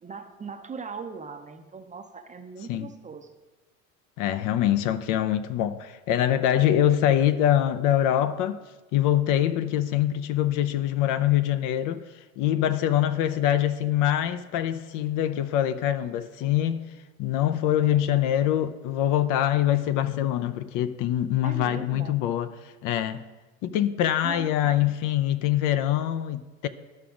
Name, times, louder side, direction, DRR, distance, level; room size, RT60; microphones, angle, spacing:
voice 1, 0.0-3.3 21.4-22.2 24.2-24.8, right 5 dB, 20° right, 0.6 m, -39 dB
voice 2, 4.2-8.6 8.9-12.0 12.4-16.9 17.2-23.2 23.6-26.7, left 11 dB, 50° left, 0.5 m, -24 dB
13.0 x 5.8 x 2.5 m
hypercardioid pair, 80°, 42 cm